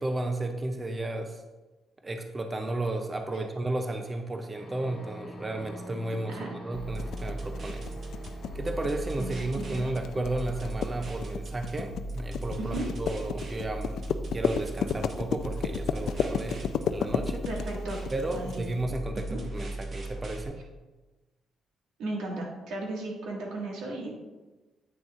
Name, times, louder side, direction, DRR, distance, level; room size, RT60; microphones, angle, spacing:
voice 1, 0.0-1.4 2.0-7.9 8.5-14.0 14.3-17.5 18.1-20.6, right 2 dB, 15° right, 5 dB, 0.4 m, -33 dB
sound 1, 4.5-11.0, equal, 15° left, 1.6 m, -46 dB
sound 2, 6.7-20.4, right 1 dB, 30° right, 0.8 m, -38 dB
sound 3, 7.0-18.6, left 8 dB, 55° left, 0.3 m, -32 dB
voice 2, 9.2-9.9 12.6-12.9 17.5-18.0 18.3-18.6 19.3-19.4 22.0-24.1, right 2 dB, 90° right, -1 dB, 1.7 m, -35 dB
8.7 x 6.4 x 2.4 m, 1.2 s
cardioid pair, 175°, 0 cm